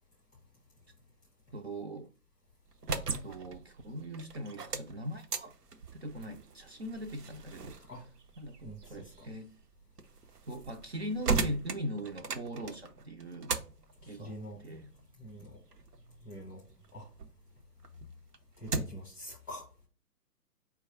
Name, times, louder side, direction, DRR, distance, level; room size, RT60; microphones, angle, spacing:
voice 1, 1.5-2.1 2.9-5.5 6.0-7.8 8.4-9.5 10.5-13.5 14.1-14.4 14.6-14.9, equal, 45° right, 0.5 m, -40 dB
sound 1, 2.6-17.4 17.8-19.1, right 4 dB, 75° right, 0.7 m, -39 dB
voice 2, 8.6-9.1 14.0-14.6 15.2-15.6 16.2-16.6 16.9-17.1 18.6-19.9, equal, 5° left, 0.6 m, -45 dB
4.5 x 2.3 x 4.6 m
figure-of-eight pair, 130°, 47 cm